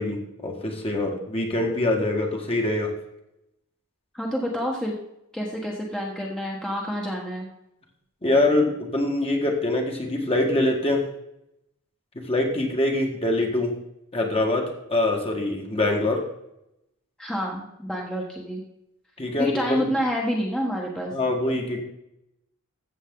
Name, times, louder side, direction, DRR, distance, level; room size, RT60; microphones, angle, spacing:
voice 1, 0.0-2.9 8.2-11.1 12.2-13.8 14.1-16.2 19.2-19.9 21.1-21.8, left 2 dB, 25° left, 1 dB, 1.8 m, -24 dB
voice 2, 4.1-4.9 5.3-7.5 17.2-18.6 19.4-21.1, equal, 5° left, -3 dB, 1.3 m, -28 dB
14.5 x 7.3 x 3.8 m, 0.83 s
head